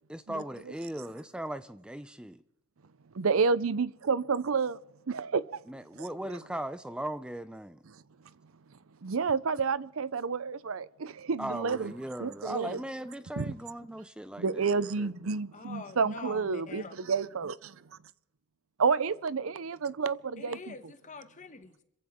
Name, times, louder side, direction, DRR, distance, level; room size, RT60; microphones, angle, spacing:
voice 1, 0.1-2.4 5.7-7.8 11.4-15.1, right 1 dB, 5° right, 0.5 m, -38 dB
voice 2, 3.1-4.8 5.1-5.6 6.0-6.1 9.0-11.9 12.2-12.8 13.4-13.5 14.4-17.8 18.8-20.7, right 5 dB, 80° right, 0.6 m, -30 dB
voice 3, 15.5-17.0 20.4-21.8, left 4 dB, 40° left, 1.2 m, -45 dB
26.5 x 15.0 x 3.7 m
head